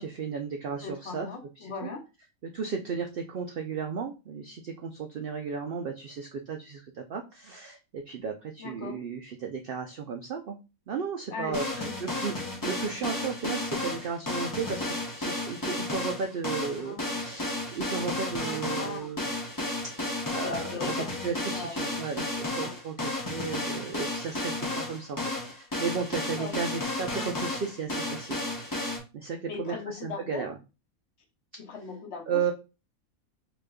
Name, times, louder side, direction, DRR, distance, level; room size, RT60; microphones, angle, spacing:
voice 1, 0.0-1.3 1.8-1.9 2.4-10.6 10.9-12.3 12.6-19.3 20.3-20.9 21.2-28.4 29.1-30.5 32.3-32.5, right 6 dB, 85° right, 3 dB, 0.5 m, -34 dB
voice 2, 0.8-2.0 8.6-9.0 11.3-12.0 16.8-17.2 18.6-19.1 20.4-21.1 21.5-21.9 22.5-22.8 26.4-26.5 29.5-30.5 31.6-32.5, left 4 dB, 55° left, 3 dB, 0.9 m, -39 dB
sound 1, 11.5-29.0, left 2 dB, 30° left, 0.4 m, -33 dB
4.9 x 2.9 x 2.2 m, 0.29 s
omnidirectional pair, 1.5 m